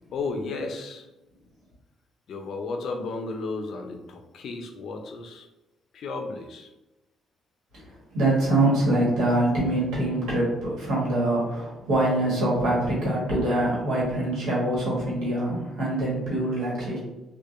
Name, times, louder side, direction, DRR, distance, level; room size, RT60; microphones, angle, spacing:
voice 1, 0.1-1.1 2.3-5.5 5.9-6.7, left 3 dB, 65° left, 4 dB, 0.4 m, -33 dB
voice 2, 8.1-17.0, right 1 dB, 85° right, -5 dB, 1.2 m, -24 dB
2.7 x 2.3 x 2.4 m, 0.97 s
cardioid pair, 90°, 0 cm